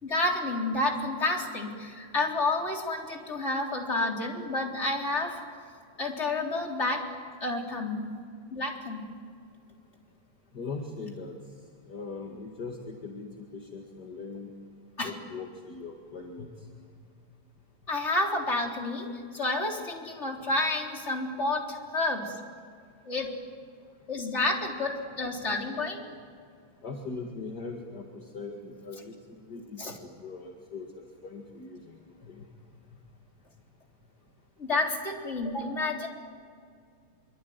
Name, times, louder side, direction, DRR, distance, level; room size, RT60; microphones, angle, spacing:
voice 1, 0.0-5.4 6.0-7.1 7.4-8.1 8.5-9.0 15.0-15.1 17.9-19.1 19.3-22.4 23.1-23.3 24.1-26.1 29.8-30.0 31.8-31.9 34.6-36.1, left 2 dB, 20° left, 1 dB, 3.7 m, -30 dB
voice 2, 10.5-11.4 11.9-14.5 15.0-16.7 26.8-31.9 32.2-32.5, left 4 dB, 35° left, 1 dB, 1.9 m, -40 dB
25.5 x 24.5 x 9.4 m, 2.2 s
omnidirectional pair, 4.1 m